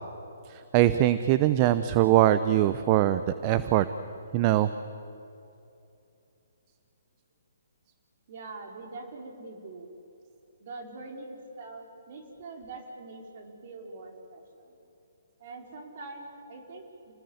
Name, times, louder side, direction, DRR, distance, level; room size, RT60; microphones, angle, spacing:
voice 1, 0.5-3.8 4.3-4.7, right 13 dB, 30° right, 13 dB, 0.8 m, -22 dB
voice 2, 8.3-9.9 10.6-14.8 15.4-17.1, right 3 dB, 50° right, 3 dB, 4.9 m, -43 dB
29.0 x 19.5 x 8.2 m, 2.8 s
hypercardioid pair, 140°, 0 cm